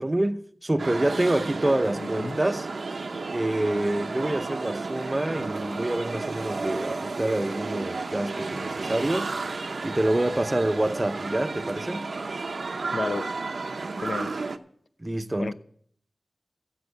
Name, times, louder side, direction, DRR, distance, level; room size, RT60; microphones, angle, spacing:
voice 1, 0.0-2.7 3.3-9.3 9.8-12.1 15.0-15.5, right 1 dB, 25° right, 0.7 m, -27 dB
sound 1, 0.8-14.6, right 3 dB, 75° right, 0.7 m, -32 dB
voice 2, 2.0-2.4 12.9-13.3 14.0-14.3 15.4-15.5, left 3 dB, 70° left, 0.6 m, -31 dB
15.5 x 5.6 x 7.9 m
wide cardioid pair, 65°, 0 cm